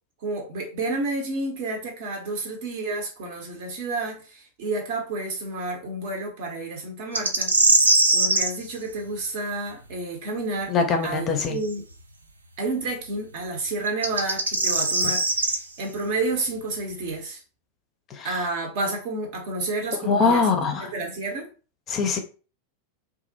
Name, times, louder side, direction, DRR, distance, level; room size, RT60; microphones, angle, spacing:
voice 1, 0.2-7.5 8.1-10.7 11.0-11.8 12.6-17.4 18.2-20.5 20.8-21.5, right 2 dB, 50° right, 0.7 m, -30 dB
sound 1, 7.1-8.5 11.7-11.8 13.9-15.6, right 2 dB, 75° right, 0.3 m, -20 dB
voice 2, 10.7-11.6 18.1-18.5 20.0-20.9 21.9-22.2, left 4 dB, 30° left, 0.5 m, -23 dB
2.3 x 2.0 x 2.7 m
figure-of-eight pair, 90°, 0 cm